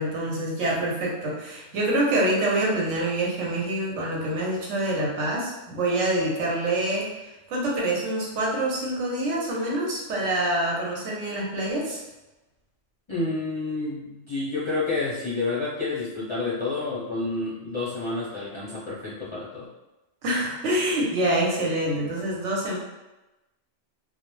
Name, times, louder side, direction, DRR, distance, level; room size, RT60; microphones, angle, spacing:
voice 1, 0.0-7.1 7.5-12.0 20.2-22.8, right 1 dB, 90° right, -3 dB, 1.0 m, -26 dB
voice 2, 13.1-19.7, left 3 dB, 40° left, -9 dB, 0.4 m, -29 dB
2.3 x 2.0 x 3.0 m, 1.0 s
omnidirectional pair, 1.2 m